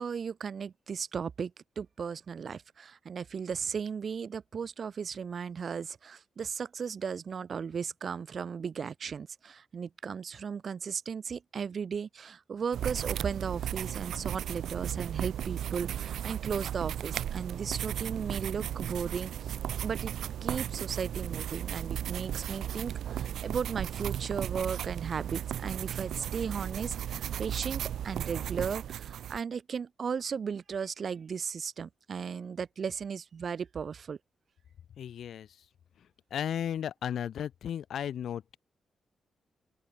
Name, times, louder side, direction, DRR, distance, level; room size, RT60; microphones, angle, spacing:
voice 1, 0.0-19.5 19.8-20.1 20.4-34.2, right 6 dB, 55° right, 3.0 m, -36 dB
sound 1, 12.7-29.4, right 10 dB, 85° right, 2.2 m, -35 dB
voice 2, 35.0-35.5 36.3-38.6, left 9 dB, 80° left, 5.1 m, -34 dB
open air
cardioid pair, 85°, 0 cm